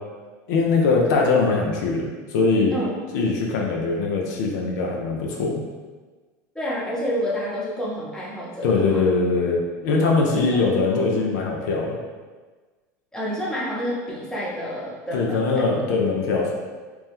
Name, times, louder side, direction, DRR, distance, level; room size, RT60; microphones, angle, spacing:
voice 1, 0.5-2.8 3.1-5.6 8.6-12.0 15.1-16.5, left 3 dB, 75° left, -1 dB, 0.5 m, -21 dB
voice 2, 6.5-9.0 13.1-15.6, equal, 5° left, -6 dB, 0.9 m, -29 dB
2.9 x 2.1 x 3.5 m, 1.4 s
hypercardioid pair, 100°, 10 cm